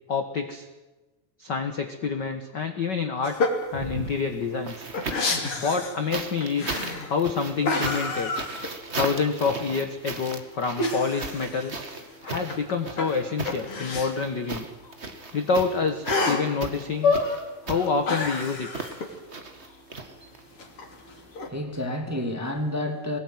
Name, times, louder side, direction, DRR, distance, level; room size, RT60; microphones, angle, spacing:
voice 1, 0.1-0.7 1.4-3.3 3.7-4.9 5.6-6.8 7.1-8.3 8.9-11.8 12.2-14.6 15.3-17.1 17.6-18.7, left 5 dB, 55° left, 1.2 m, -27 dB
sound 1, 3.2-3.7 4.1-4.2 4.4-6.1 6.4-7.2 7.6-9.1 9.5-9.6 10.8-12.6 12.9-14.1 14.5-14.6 14.8-14.9 16.1-16.5 16.9-17.4 17.7-19.1 20.6-21.5, left 3 dB, 40° left, 3.8 m, -28 dB
sound 2, 3.7-5.4 6.1-20.6 21.8-21.9, right 3 dB, 30° right, 1.2 m, -36 dB
voice 2, 21.2-23.2, left 1 dB, 5° right, 1.6 m, -30 dB
22.0 x 19.5 x 9.3 m
omnidirectional pair, 4.1 m